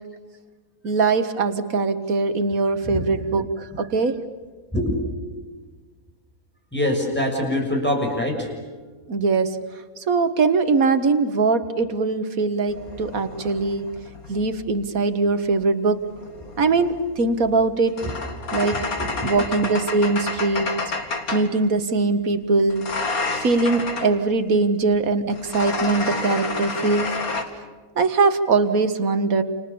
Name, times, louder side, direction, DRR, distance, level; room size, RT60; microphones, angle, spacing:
voice 1, 0.8-3.5 3.8-4.3 9.1-9.6 10.1-13.9 14.3-16.0 16.6-18.0 18.5-18.8 19.2-20.7 21.3-22.8 23.4-27.1 28.0-29.4, right 3 dB, 75° right, 10 dB, 2.0 m, -21 dB
voice 2, 6.7-8.5 18.0-18.1 19.2-19.3, left 1 dB, 5° left, 1 dB, 6.7 m, -24 dB
sound 1, 12.7-14.8 16.0-21.6 22.7-24.2 25.3-27.4, left 3 dB, 90° left, 2.8 m, -30 dB
30.0 x 28.5 x 7.0 m, 1.4 s
omnidirectional pair, 1.5 m